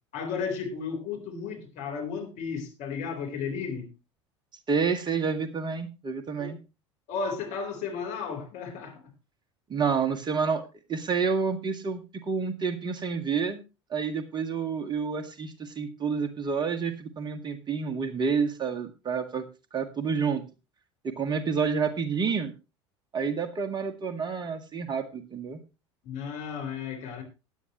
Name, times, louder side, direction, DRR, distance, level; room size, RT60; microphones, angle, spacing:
voice 1, 0.1-3.9 6.4-6.6 7.1-9.0 26.0-27.2, left 5 dB, 55° left, 4.0 m, -34 dB
voice 2, 4.7-6.6 9.7-10.6 10.9-13.6 13.9-19.4 19.7-20.4 21.0-22.5 23.1-25.6, right 5 dB, 30° right, 1.9 m, -29 dB
16.5 x 9.8 x 3.1 m
figure-of-eight pair, 70°, 15 cm